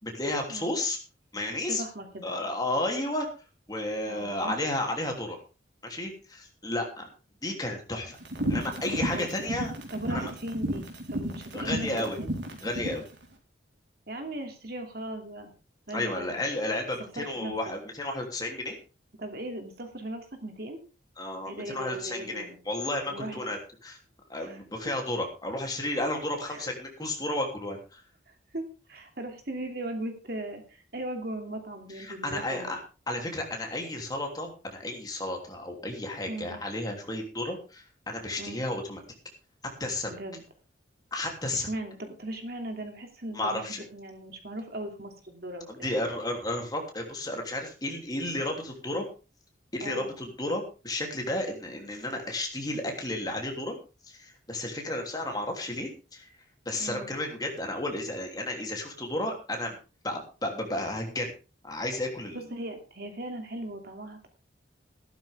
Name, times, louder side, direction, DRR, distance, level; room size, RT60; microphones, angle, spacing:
voice 1, 0.0-1.0 1.3-1.8 2.2-3.3 3.7-5.4 5.8-7.1 7.4-8.2 8.5-9.7 10.1-10.3 11.5-12.2 12.6-13.0 15.9-18.8 21.2-24.0 24.3-28.0 31.9-32.8 33.1-39.0 39.8-40.2 41.1-41.7 43.3-43.8 45.7-49.1 49.7-53.7 54.0-56.3 56.6-59.7 60.0-61.3 61.6-62.5, left 1 dB, 20° left, 2 dB, 3.1 m, -32 dB
voice 2, 1.7-2.4 4.1-4.6 9.1-9.3 9.9-12.3 14.1-15.5 15.9-16.5 17.2-17.5 19.2-20.8 21.5-22.6 23.1-23.4 24.4-24.6 26.5-26.7 28.5-32.7 36.3-36.6 38.4-38.6 40.1-40.4 41.5-46.0 49.8-50.1 56.8-57.1 62.3-64.3, right 1 dB, 50° right, 5 dB, 2.8 m, -38 dB
sound 1, 8.2-13.0, right 1 dB, 70° right, 4.0 m, -32 dB
15.0 x 12.5 x 3.6 m, 0.33 s
head